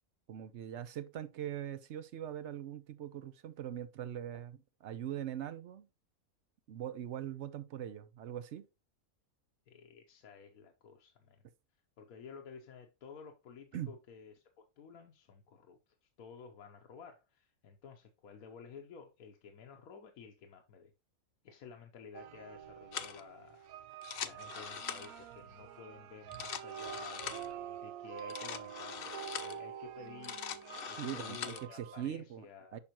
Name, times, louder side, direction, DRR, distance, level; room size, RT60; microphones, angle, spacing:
voice 1, 0.3-4.6 4.8-5.9 6.7-8.7 13.7-13.9 31.0-32.5 32.7-32.8, right 10 dB, 60° right, 0.8 m, -41 dB
voice 2, 9.7-11.4 12.0-20.9 21.4-23.6 23.9-30.4 30.9-32.8, left 6 dB, 80° left, 1.2 m, -53 dB
sound 1, 22.1-32.1, right 10 dB, 85° right, 1.0 m, -47 dB
sound 2, 22.9-23.2 23.9-25.3 26.2-27.5 28.2-29.6 30.1-31.7, left 8 dB, 60° left, 0.6 m, -43 dB
6.9 x 5.6 x 2.9 m
omnidirectional pair, 1.5 m